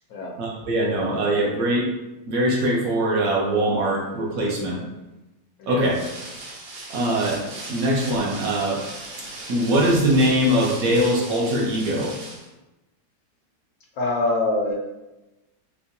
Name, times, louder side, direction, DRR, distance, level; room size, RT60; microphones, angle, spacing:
voice 1, 0.4-1.9 2.3-4.8 5.7-6.0 6.9-7.4 7.7-8.8 9.5-12.1, right 1 dB, 70° right, -2 dB, 0.9 m, -22 dB
voice 2, 5.6-5.9 14.0-14.7, left 2 dB, 70° left, -1 dB, 1.0 m, -24 dB
sound 1, 5.8-12.5, right 2 dB, 85° right, 0.5 m, -38 dB
4.5 x 2.1 x 2.6 m, 1.0 s
omnidirectional pair, 1.8 m